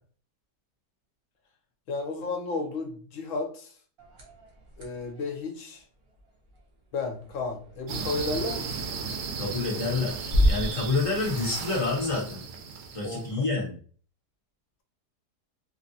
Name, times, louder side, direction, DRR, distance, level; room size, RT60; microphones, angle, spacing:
voice 1, 1.9-3.7 4.8-5.8 6.9-8.9 13.0-13.3, left 3 dB, 60° left, 3 dB, 0.9 m, -33 dB
sound 1, 4.0-12.3, equal, 45° right, 0.9 m, -33 dB
sound 2, 7.9-13.3, right 5 dB, 80° right, 1.2 m, -35 dB
voice 2, 9.3-12.4 12.9-13.8, left 3 dB, 35° left, -4 dB, 0.5 m, -28 dB
3.1 x 2.5 x 2.6 m, 0.43 s
omnidirectional pair, 1.8 m